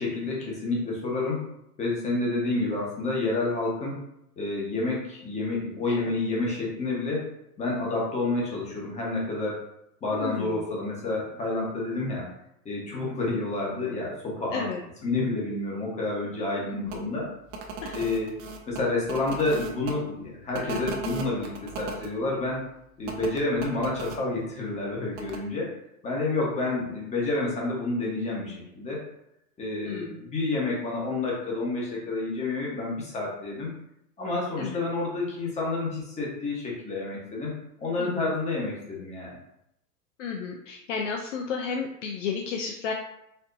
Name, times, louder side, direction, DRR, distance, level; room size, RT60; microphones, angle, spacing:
voice 1, 0.0-1.4 1.8-4.0 4.4-7.3 7.6-9.6 10.0-12.3 12.6-14.7 15.0-17.3 17.9-18.3 18.7-22.6 23.0-25.7 26.0-29.0 29.6-33.7 34.2-37.5 37.8-39.4, left 2 dB, 15° left, -4 dB, 1.1 m, -29 dB
voice 2, 10.1-10.6 14.5-14.8 16.7-17.1 17.8-18.0 29.8-30.1 34.6-34.8 38.0-38.3 40.2-42.9, left 5 dB, 50° left, 2 dB, 0.5 m, -33 dB
sound 1, 16.9-17.0 17.5-19.9 20.5-22.1 23.0-24.2 25.1-25.4, right 3 dB, 50° right, 0.8 m, -36 dB
4.3 x 2.6 x 2.5 m, 0.81 s
hypercardioid pair, 120°, 47 cm